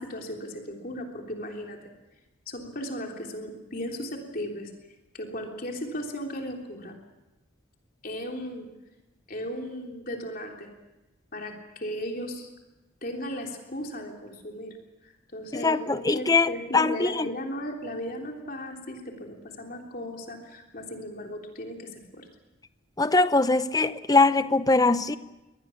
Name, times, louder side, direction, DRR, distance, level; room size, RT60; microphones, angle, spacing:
voice 1, 0.0-1.9 2.5-4.7 5.1-7.0 8.0-8.7 9.3-10.7 11.3-12.5 13.0-14.7 15.0-22.3, equal, 45° left, 3.4 m, -36 dB
voice 2, 15.5-17.3 23.0-25.2, left 3 dB, 15° left, 0.7 m, -22 dB
24.5 x 20.0 x 7.2 m
head